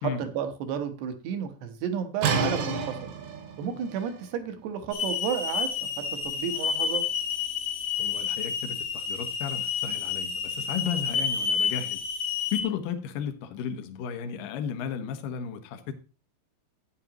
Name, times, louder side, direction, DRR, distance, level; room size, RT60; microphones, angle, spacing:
voice 1, 0.0-3.0 3.6-5.9 6.2-7.0, right 8 dB, 70° right, 7 dB, 2.9 m, -32 dB
sound 1, 2.2-7.8, right 5 dB, 85° right, 4.3 m, -33 dB
Hiss / Alarm, 4.9-12.6, left 6 dB, 70° left, 1.8 m, -30 dB
voice 2, 8.0-12.0 12.5-15.9, left 8 dB, 85° left, 7 dB, 1.9 m, -34 dB
12.5 x 9.3 x 2.9 m, 0.31 s
omnidirectional pair, 5.5 m